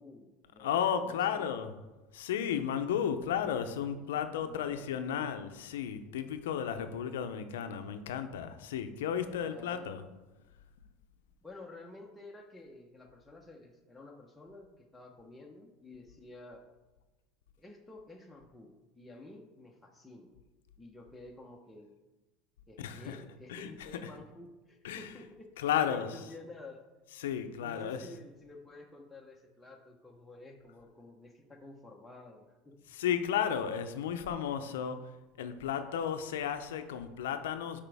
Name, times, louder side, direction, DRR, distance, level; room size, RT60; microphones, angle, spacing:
voice 1, 0.0-1.7 4.4-5.3 9.4-9.9 11.4-16.6 17.6-20.3 20.8-22.0 22.7-26.9 27.6-33.0, left 2 dB, 5° left, 1.0 m, -51 dB
voice 2, 0.6-1.7 2.1-10.0 22.8-23.2 23.5-23.7 24.8-25.1 25.6-26.1 27.2-28.1 32.9-37.8, left 8 dB, 85° left, 0.6 m, -33 dB
8.5 x 5.1 x 3.5 m
supercardioid pair, 105°, 0 cm